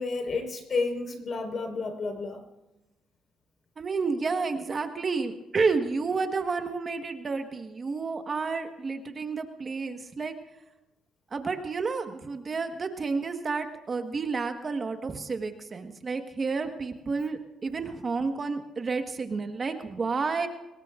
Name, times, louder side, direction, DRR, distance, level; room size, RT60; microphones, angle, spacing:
voice 1, 0.0-2.4, left 3 dB, 50° left, 3 dB, 4.4 m, -31 dB
voice 2, 3.8-10.3 11.3-20.5, right 4 dB, 40° right, 6 dB, 1.4 m, -30 dB
25.0 x 20.0 x 2.5 m, 0.99 s
cardioid pair, 90°, 0 cm